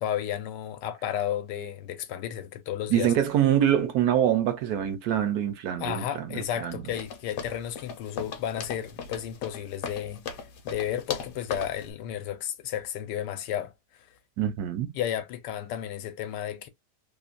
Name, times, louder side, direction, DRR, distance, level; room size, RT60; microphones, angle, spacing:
voice 1, 0.0-3.1 5.8-10.2 10.6-14.1 14.9-16.7, left 10 dB, 85° left, 1.2 m, -33 dB
voice 2, 2.9-6.9 14.4-14.9, right 10 dB, 70° right, 1.1 m, -25 dB
sound 1, 6.9-11.9, left 6 dB, 65° left, 1.0 m, -38 dB
3.0 x 2.1 x 2.4 m
omnidirectional pair, 1.8 m